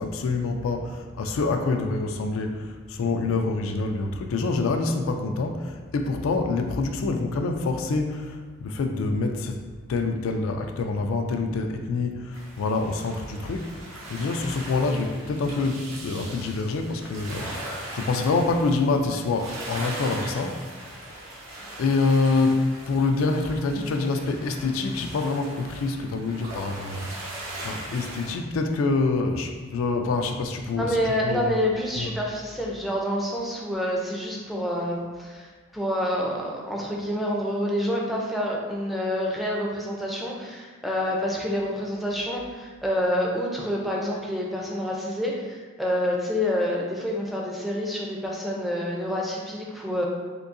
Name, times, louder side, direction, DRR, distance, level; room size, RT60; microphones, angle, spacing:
voice 1, 0.0-9.6 9.9-13.7 14.1-20.6 21.8-27.1 27.6-31.5 31.9-32.2, left 3 dB, 80° left, 4 dB, 0.3 m, -26 dB
sound 1, 12.3-28.3, right 1 dB, 85° right, 0.8 m, -40 dB
voice 2, 30.8-50.0, equal, ahead, -3 dB, 0.4 m, -28 dB
3.7 x 2.6 x 2.5 m, 1.4 s
head